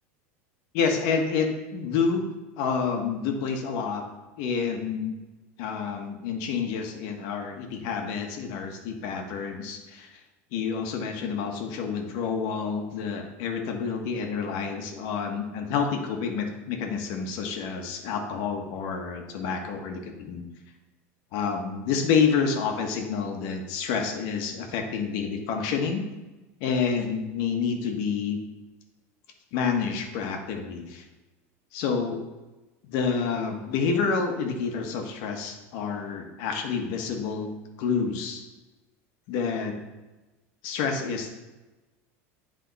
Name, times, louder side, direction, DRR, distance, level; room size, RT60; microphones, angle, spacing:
voice 1, 0.7-2.3 2.6-4.0 4.4-5.1 5.6-10.2 10.5-20.4 21.3-26.0 26.6-28.4 29.5-31.0 31.7-32.2 32.8-37.5 37.8-38.4 39.3-39.7 40.6-41.3, left 5 dB, 60° left, 4 dB, 1.3 m, -28 dB
10.0 x 3.7 x 4.1 m, 1.1 s
supercardioid pair, 125°, 8 cm